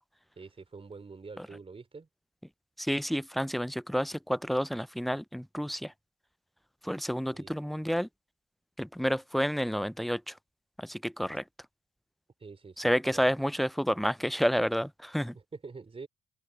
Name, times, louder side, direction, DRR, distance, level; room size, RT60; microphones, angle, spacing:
voice 1, 0.4-2.1 7.3-7.6 12.4-13.3 15.3-16.1, right 4 dB, 30° right, 4.2 m, -46 dB
voice 2, 2.8-5.9 6.8-8.1 8.8-10.4 10.8-11.4 12.8-15.4, equal, ahead, 0.5 m, -30 dB
supercardioid pair, 60°, 18 cm